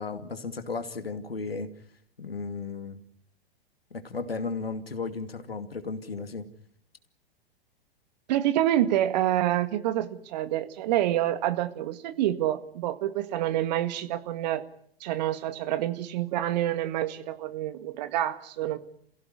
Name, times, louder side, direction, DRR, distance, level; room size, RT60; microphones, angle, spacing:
voice 1, 0.0-1.7 2.2-3.0 3.9-6.5, left 4 dB, 80° left, 8 dB, 2.5 m, -34 dB
voice 2, 8.3-14.6 15.0-18.8, right 13 dB, 45° right, 11 dB, 1.8 m, -27 dB
28.5 x 16.0 x 9.8 m, 0.70 s
figure-of-eight pair, 100°, 30 cm